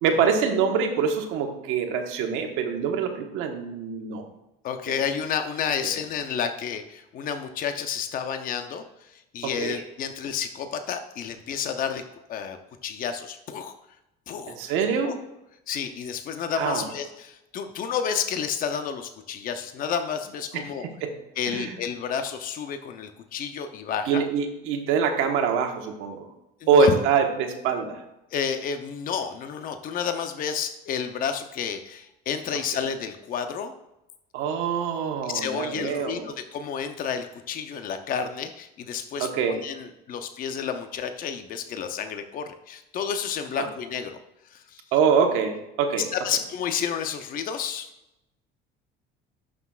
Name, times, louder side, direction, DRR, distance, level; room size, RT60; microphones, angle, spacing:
voice 1, 0.0-4.3 9.4-9.8 14.5-15.1 16.5-16.9 20.5-20.6 21.0-21.1 21.5-21.7 24.1-26.3 26.7-28.0 34.3-36.3 39.2-39.6 43.6-43.7 44.9-46.1, right 6 dB, 80° right, 4 dB, 1.2 m, -24 dB
voice 2, 4.6-12.0 12.3-13.7 14.3-14.6 15.0-15.1 15.7-20.9 21.4-24.2 26.6-26.9 28.3-33.7 35.2-44.2 44.5-44.8 46.1-47.9, left 7 dB, 45° left, 8 dB, 0.6 m, -31 dB
11.5 x 6.0 x 2.4 m, 0.90 s
cardioid pair, 135°, 21 cm